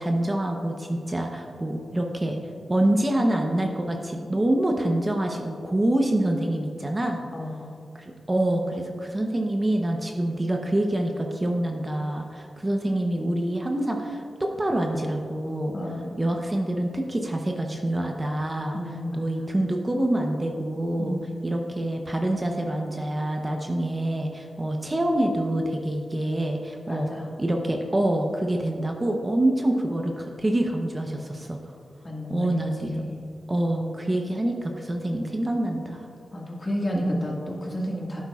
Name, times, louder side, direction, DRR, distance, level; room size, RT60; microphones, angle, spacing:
voice 1, 0.0-2.4 2.7-7.2 7.9-15.7 16.2-18.8 19.1-21.2 21.4-27.1 27.4-31.7 32.3-33.0 33.5-36.1 36.9-37.2, right 1 dB, 25° right, 2 dB, 0.9 m, -26 dB
voice 2, 7.3-7.8 15.7-16.2 18.7-19.2 21.0-21.5 26.9-27.3 32.0-33.3 36.3-38.2, left 1 dB, 35° left, -2 dB, 1.9 m, -32 dB
11.0 x 9.1 x 2.4 m, 2.3 s
cardioid pair, 60°, 0 cm